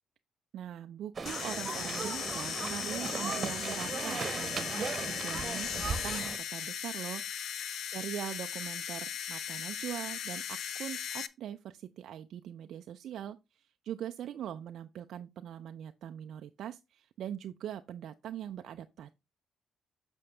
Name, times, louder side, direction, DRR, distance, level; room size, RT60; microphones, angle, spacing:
voice 1, 0.5-19.1, right 10 dB, 70° right, 0.4 m, -42 dB
sound 1, 1.2-6.4, right 5 dB, 40° right, 1.1 m, -37 dB
sound 2, 1.3-11.3, left 9 dB, 70° left, 0.5 m, -38 dB
7.6 x 5.2 x 3.3 m
cardioid pair, 90°, 0 cm